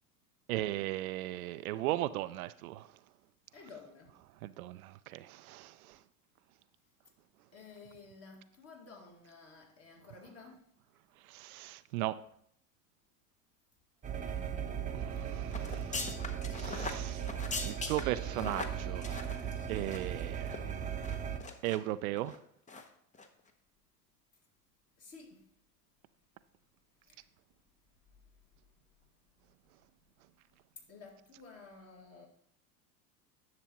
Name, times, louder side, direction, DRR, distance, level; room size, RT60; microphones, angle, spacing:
voice 1, 0.5-2.9 4.4-6.0 11.2-12.2 14.9-16.1 16.5-17.3 17.6-20.8 21.6-22.4, right 15 dB, 65° right, 0.5 m, -37 dB
voice 2, 3.5-4.2 7.5-10.6 14.5-14.9 16.2-16.9 25.0-25.4 27.1-27.3 30.9-32.3, left 4 dB, 30° left, 2.1 m, -54 dB
sound 1, 14.0-21.4, right 8 dB, 15° right, 0.9 m, -38 dB
sound 2, 15.5-20.2 20.5-20.6 21.0-21.8 22.2-22.4 22.7-22.9 23.1-23.3, left 3 dB, 15° left, 0.8 m, -41 dB
10.5 x 6.8 x 3.0 m
hypercardioid pair, 90°, 47 cm